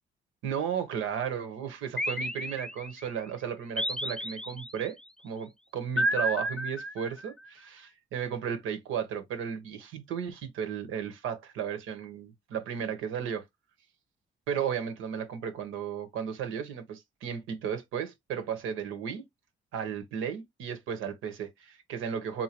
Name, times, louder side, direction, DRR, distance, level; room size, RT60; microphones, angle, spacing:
voice 1, 0.4-5.0 5.2-13.4 14.5-19.3 19.7-22.4, right 8 dB, 90° right, 1.0 m, -34 dB
sound 1, 2.0-3.1 3.8-4.9 6.0-7.4, equal, 5° left, 0.4 m, -32 dB
3.8 x 2.7 x 2.9 m
cardioid pair, 90°, 20 cm